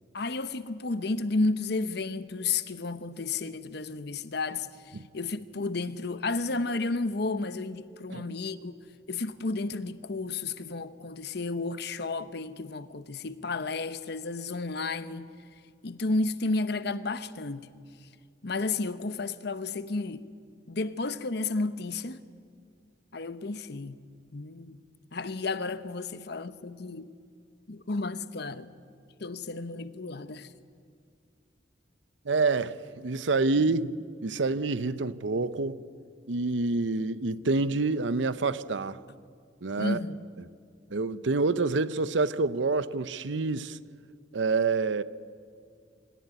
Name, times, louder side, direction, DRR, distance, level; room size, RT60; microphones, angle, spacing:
voice 1, 0.1-8.8 9.1-15.3 15.8-17.7 18.4-20.3 20.7-22.2 23.1-24.0 24.3-24.8 25.1-27.1 27.7-28.7 29.2-30.5 39.8-40.2, left 3 dB, 60° left, 0.9 m, -32 dB
voice 2, 32.2-33.9 34.2-35.8 36.3-39.0 39.6-40.0 40.9-43.8 44.3-45.0, right 3 dB, 75° right, 0.7 m, -27 dB
25.5 x 15.0 x 10.0 m
head